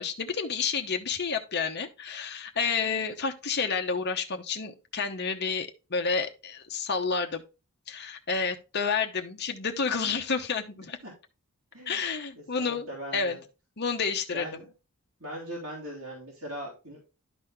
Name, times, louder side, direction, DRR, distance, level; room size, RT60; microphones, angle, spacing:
voice 1, 0.0-7.4 7.9-11.0 11.9-13.4 13.8-14.6, left 5 dB, 50° left, 0.9 m, -30 dB
voice 2, 11.7-12.0 12.3-13.4 14.3-14.7 15.2-17.0, equal, 60° right, 3.3 m, -40 dB
12.0 x 4.2 x 3.4 m
head